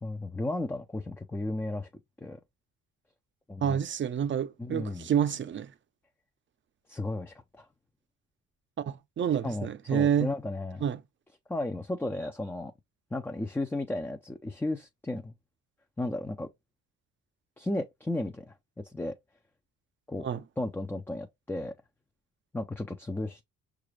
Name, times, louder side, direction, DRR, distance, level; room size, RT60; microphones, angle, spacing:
voice 1, 0.0-1.9 2.2-2.4 3.5-3.8 4.6-5.1 6.9-7.7 9.4-10.9 11.5-12.7 13.1-15.3 16.0-16.5 17.6-19.2 20.1-20.3 20.6-21.7 22.5-23.4, left 2 dB, 5° left, 0.4 m, -34 dB
voice 2, 3.6-5.7 8.9-10.4 10.8-11.0 20.2-20.4, right 9 dB, 40° right, 0.6 m, -28 dB
5.8 x 2.4 x 3.2 m
cardioid pair, 90°, 30 cm